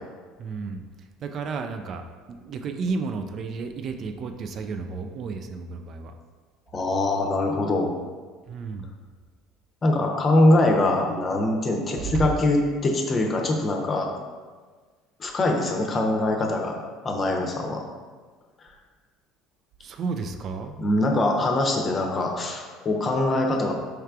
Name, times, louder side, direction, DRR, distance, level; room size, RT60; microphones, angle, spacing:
voice 1, 0.4-6.1 8.5-9.0 12.0-12.3 19.8-20.7, right 5 dB, 50° right, 6 dB, 0.3 m, -32 dB
voice 2, 6.7-7.9 9.8-14.1 15.2-17.8 20.8-23.7, left 2 dB, 35° left, 1 dB, 0.7 m, -23 dB
4.6 x 3.2 x 2.4 m, 1.5 s
hypercardioid pair, 65°, 0 cm